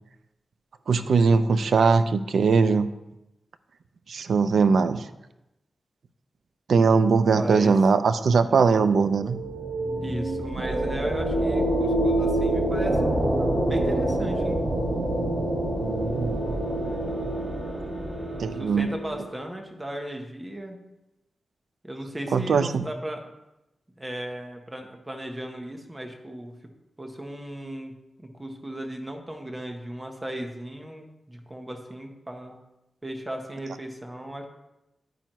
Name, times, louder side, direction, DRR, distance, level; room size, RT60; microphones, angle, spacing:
voice 1, 0.9-2.9 4.1-5.1 6.7-9.4 15.8-16.5 18.4-18.9 22.3-22.9, right 5 dB, 75° right, 11 dB, 0.4 m, -21 dB
voice 2, 7.3-7.7 10.0-14.6 18.1-20.8 21.8-23.3 24.0-26.5 27.0-27.9 28.2-32.6 33.0-34.4, right 1 dB, 15° right, 3 dB, 0.8 m, -36 dB
sound 1, 8.8-19.4, right 1 dB, 45° right, 1.6 m, -27 dB
9.0 x 8.8 x 3.0 m, 0.93 s
wide cardioid pair, 180°, 0 cm